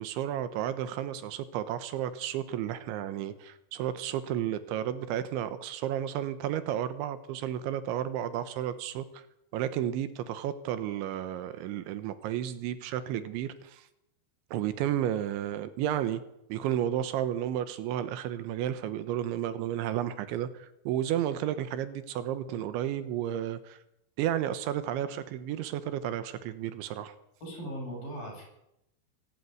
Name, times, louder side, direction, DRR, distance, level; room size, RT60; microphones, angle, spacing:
voice 1, 0.0-9.2 9.5-13.9 14.5-16.2 16.5-23.8 24.2-27.1, right 11 dB, 80° right, 3.4 m, -32 dB
voice 2, 27.4-28.4, equal, 45° left, 9.6 m, -38 dB
24.5 x 12.5 x 9.4 m
omnidirectional pair, 5.5 m